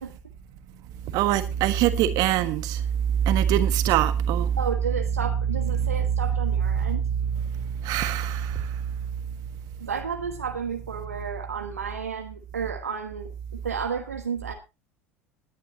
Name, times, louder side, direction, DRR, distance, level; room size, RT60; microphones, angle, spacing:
voice 1, 1.1-2.8 3.2-4.6 5.8-6.0 6.7-6.9 7.2-8.9, right 10 dB, 50° right, 1.5 m, -24 dB
voice 2, 4.6-7.0 9.8-13.3 13.6-14.5, right 6 dB, 80° right, 1.2 m, -32 dB
20.0 x 10.5 x 2.9 m
figure-of-eight pair, 70°, 8 cm